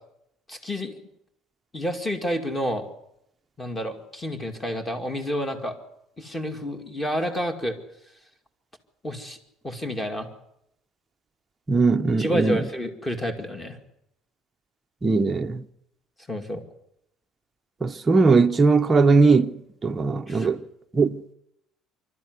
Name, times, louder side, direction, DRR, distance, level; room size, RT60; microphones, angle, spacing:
voice 1, 0.5-1.1 1.7-2.9 3.6-5.8 6.2-7.8 9.0-9.4 9.6-10.3 12.2-13.8 16.3-16.6 20.3-20.5, equal, 10° left, 2.3 m, -29 dB
voice 2, 11.7-12.6 15.0-15.6 17.8-19.6 19.8-20.6 20.9-21.2, right 4 dB, 15° right, 0.8 m, -19 dB
25.5 x 13.0 x 9.6 m
cardioid pair, 150°, 0 cm